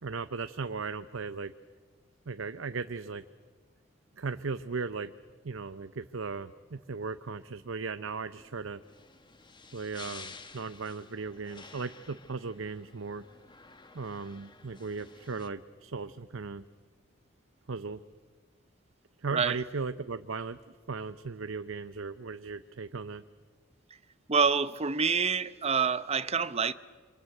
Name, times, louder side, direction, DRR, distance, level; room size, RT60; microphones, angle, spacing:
voice 1, 0.0-1.5 2.3-3.2 4.2-5.1 5.4-8.8 9.7-13.2 13.9-16.6 17.7-18.0 19.2-20.6 20.9-23.2, right 4 dB, 90° right, 0.8 m, -37 dB
sound 1, 8.3-15.5, left 4 dB, 25° left, 1.3 m, -52 dB
voice 2, 19.3-19.6 24.3-26.7, right 5 dB, 30° right, 0.8 m, -27 dB
28.0 x 26.5 x 8.0 m
head